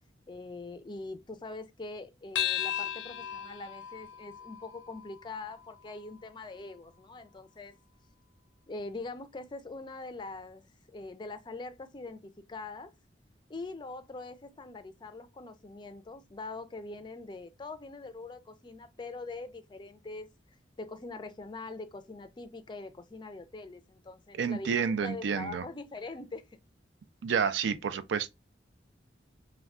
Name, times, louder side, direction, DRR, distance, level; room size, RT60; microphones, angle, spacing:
voice 1, 0.3-7.8 8.7-12.9 13.5-20.3 20.8-26.4, left 3 dB, 25° left, 0.4 m, -43 dB
sound 1, 2.3-7.1, left 11 dB, 85° left, 0.5 m, -37 dB
voice 2, 24.4-25.6 27.2-28.3, right 6 dB, 80° right, 0.4 m, -29 dB
2.3 x 2.2 x 3.5 m
head